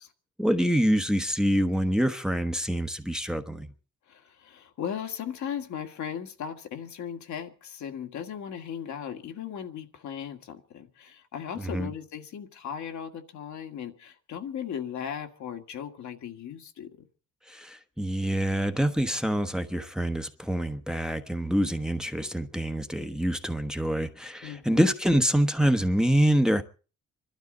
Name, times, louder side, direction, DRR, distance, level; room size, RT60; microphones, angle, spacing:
voice 1, 0.4-3.7 11.6-11.9 17.5-26.6, equal, ahead, 1.0 m, -26 dB
voice 2, 4.1-16.9 24.4-24.9, left 8 dB, 70° left, 1.8 m, -37 dB
25.5 x 12.5 x 3.9 m
cardioid pair, 90°, 30 cm